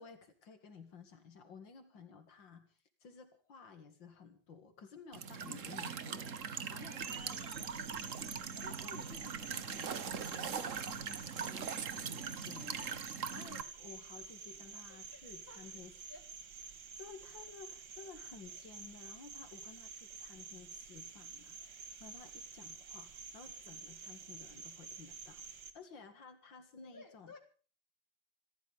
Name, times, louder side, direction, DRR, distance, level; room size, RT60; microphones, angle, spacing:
voice 1, 0.0-7.4 8.6-16.1 17.0-25.4 25.7-27.3, left 5 dB, 85° left, 8 dB, 2.8 m, -55 dB
Walk footsteps / Chirp tweet / Stream, 5.1-13.6, right 6 dB, 50° right, 1.4 m, -41 dB
Cricket, 7.0-25.7, right 5 dB, 75° right, 2.4 m, -50 dB
voice 2, 7.1-9.1 14.9-16.2 26.8-27.4, left 2 dB, 30° left, 3 dB, 3.9 m, -59 dB
27.0 x 13.5 x 3.6 m, 0.40 s
omnidirectional pair, 2.0 m